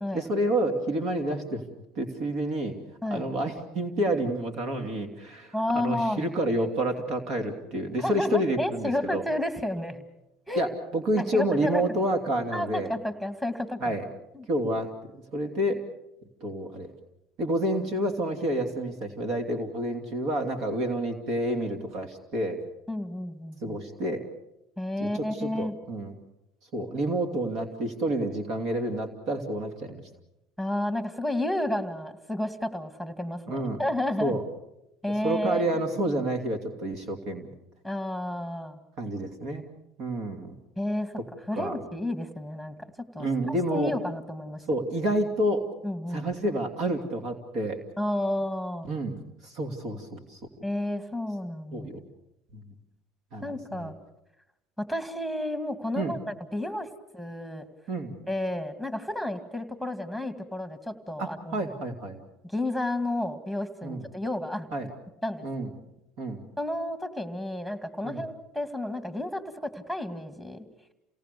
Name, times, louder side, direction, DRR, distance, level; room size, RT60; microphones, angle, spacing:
voice 1, 0.1-1.6 1.9-2.7 3.1-9.2 10.6-12.9 13.8-14.0 14.5-14.9 15.3-15.8 16.4-16.9 17.4-22.6 23.6-24.2 25.0-26.2 26.7-30.0 33.5-33.8 34.2-34.4 35.2-37.5 39.0-39.6 40.0-40.5 41.6-41.8 43.2-43.9 44.7-45.6 46.1-47.8 48.9-49.2 49.4-50.4 51.7-52.0 52.5-52.6 53.3-53.9 56.0-56.1 57.9-58.1 61.2-62.2 63.8-64.0 64.7-64.9 65.4-65.7 66.2-66.4 68.0-68.2, right 1 dB, 60° right, 6 dB, 2.9 m, -29 dB
voice 2, 5.5-6.3 8.0-10.0 10.5-10.7 11.3-11.8 12.5-14.0 14.3-14.5 22.9-23.8 24.8-25.7 30.6-34.4 35.0-35.6 37.8-38.8 40.8-41.1 41.5-42.7 43.1-44.6 45.8-46.3 48.0-48.9 50.6-51.9 53.4-54.0 54.8-56.9 57.1-57.6 58.3-61.7 62.4-64.7 65.2-65.5 66.6-70.6, left 1 dB, 5° right, 11 dB, 2.3 m, -31 dB
28.5 x 18.0 x 6.9 m, 0.89 s
supercardioid pair, 90°, 0 cm